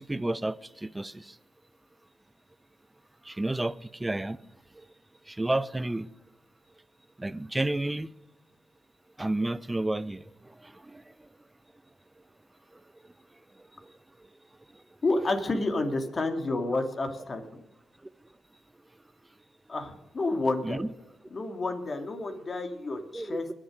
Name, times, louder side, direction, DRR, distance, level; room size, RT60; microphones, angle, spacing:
voice 1, 0.0-1.4 3.2-4.4 4.7-4.9 5.3-6.1 7.2-8.1 9.2-11.1 13.8-13.9 14.7-14.8 20.6-20.9 23.1-23.4, right 2 dB, 20° right, 0.7 m, -31 dB
voice 2, 15.0-17.6 19.7-20.8 21.3-23.5, left 2 dB, 45° left, 2.6 m, -30 dB
22.0 x 7.5 x 5.1 m
supercardioid pair, 50°, 0 cm